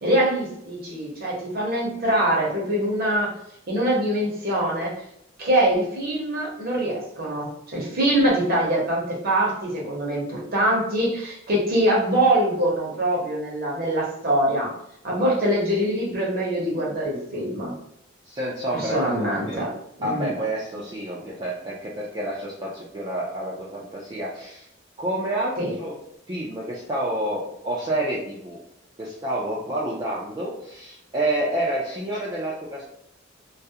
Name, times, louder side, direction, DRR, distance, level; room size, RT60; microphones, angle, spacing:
voice 1, 0.0-3.3 3.7-4.9 5.4-14.7 15.0-17.7 18.7-19.7 20.0-20.3 25.6-25.7, right 1 dB, 50° right, -3 dB, 0.7 m, -23 dB
voice 2, 18.3-19.6 20.0-24.6 25.0-26.0 26.3-28.6 29.0-32.8, right 1 dB, 25° right, -6 dB, 0.4 m, -29 dB
2.3 x 2.0 x 2.7 m, 0.74 s
head